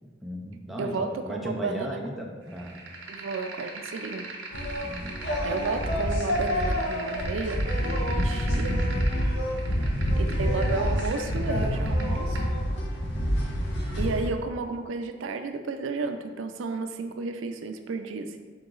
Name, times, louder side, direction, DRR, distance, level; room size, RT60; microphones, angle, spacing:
voice 1, 0.0-2.8 4.8-5.2 8.1-8.7 9.7-10.2, equal, ahead, -1 dB, 0.4 m, -37 dB
voice 2, 0.8-2.0 3.1-4.3 5.4-8.8 10.2-12.4 14.0-18.4, right 3 dB, 85° right, 7 dB, 0.4 m, -32 dB
sound 1, 2.5-12.5, right 2 dB, 70° right, 0.7 m, -41 dB
sound 2, 4.5-14.3, equal, 65° left, 0.7 m, -27 dB
4.5 x 3.0 x 3.8 m, 1.5 s
head